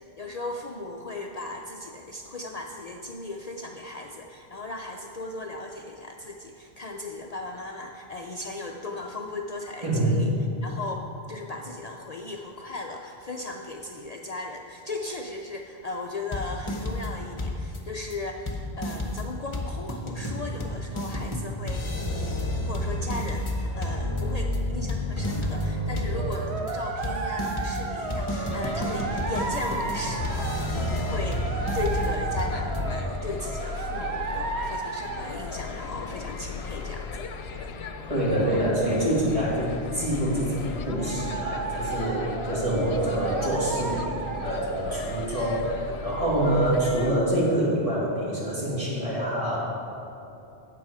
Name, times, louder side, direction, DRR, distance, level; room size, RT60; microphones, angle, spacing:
voice 1, 0.0-10.3 10.6-37.2 46.3-46.6, left 2 dB, 50° left, 2 dB, 0.5 m, -37 dB
voice 2, 9.8-10.2 38.1-49.6, right 1 dB, 30° right, -6 dB, 2.3 m, -26 dB
sound 1, 16.3-17.1 17.4-17.8 18.1-18.2 18.5-32.9, left 1 dB, 30° left, 1.0 m, -30 dB
sound 2, 26.2-36.0 40.9-45.2, right 4 dB, 80° right, 1.0 m, -34 dB
sound 3, 28.5-47.2, left 4 dB, 75° left, 0.9 m, -37 dB
9.5 x 7.8 x 4.8 m, 2.9 s
omnidirectional pair, 1.1 m